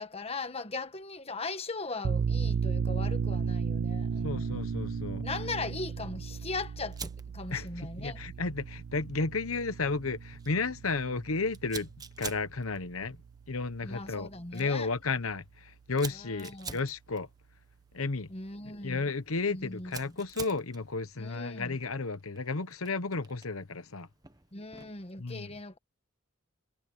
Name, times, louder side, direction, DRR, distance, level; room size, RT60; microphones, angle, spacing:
voice 1, 0.0-4.6 5.2-8.2 13.8-14.9 16.1-16.8 18.3-19.0 19.5-20.2 21.2-21.8 24.5-25.8, left 3 dB, 30° left, 1.5 m, -39 dB
sound 1, 2.0-13.3, right 6 dB, 85° right, 0.4 m, -34 dB
voice 2, 4.2-5.2 7.5-11.9 12.2-13.2 13.5-17.3 17.9-18.3 18.8-24.1 25.2-25.5, left 3 dB, 80° left, 1.1 m, -33 dB
Fire, 6.9-25.1, right 5 dB, 20° right, 1.1 m, -49 dB
head